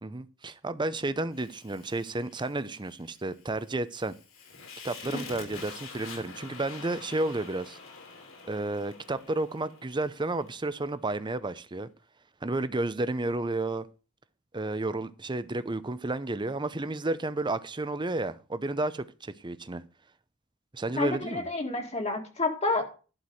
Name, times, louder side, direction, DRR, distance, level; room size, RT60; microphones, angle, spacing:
voice 1, 0.0-4.1 4.8-7.8 8.4-11.9 12.4-13.9 14.5-19.8 20.7-21.5, right 2 dB, 25° right, 0.7 m, -32 dB
Fire, 1.3-10.5, left 4 dB, 85° left, 4.1 m, -47 dB
voice 2, 21.0-22.8, left 3 dB, 30° left, 2.0 m, -29 dB
11.5 x 4.7 x 7.8 m
head